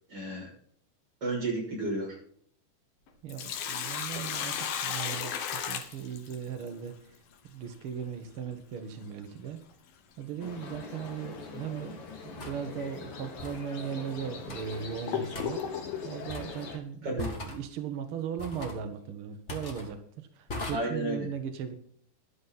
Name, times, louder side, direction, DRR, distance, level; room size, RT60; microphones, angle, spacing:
voice 1, 0.1-0.5 1.2-2.2 17.0-17.4 20.7-21.3, right 2 dB, 30° right, -3 dB, 6.8 m, -32 dB
Sink (filling or washing), 3.1-6.7 9.1-9.2 11.1-11.3 11.8-11.9 12.7-12.8 13.5-13.6 14.2-16.1, left 8 dB, 80° left, 3.1 m, -34 dB
voice 2, 3.2-7.2 7.5-9.6 10.2-21.7, right 8 dB, 70° right, 7 dB, 1.2 m, -38 dB
sound 1, 10.4-16.8, left 5 dB, 45° left, 2.4 m, -43 dB
sound 2, 10.7-10.8 12.4-12.6 13.4-13.6 14.5-14.8 15.3-15.5 16.3-16.7 17.2-17.6 18.4-18.8 19.5-19.9 20.5-20.7, left 2 dB, 30° left, 1.4 m, -39 dB
12.5 x 11.5 x 4.0 m, 0.62 s
omnidirectional pair, 4.1 m